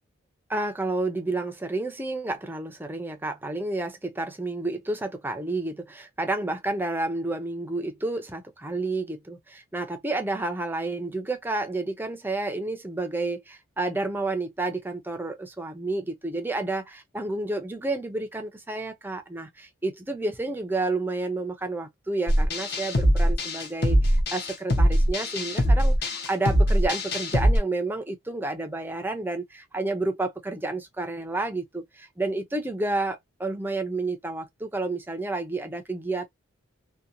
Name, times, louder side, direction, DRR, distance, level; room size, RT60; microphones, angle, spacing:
voice 1, 0.5-36.3, right 2 dB, 10° right, 0.4 m, -30 dB
sound 1, 22.3-27.6, equal, 50° left, 0.7 m, -22 dB
2.7 x 2.1 x 2.5 m
head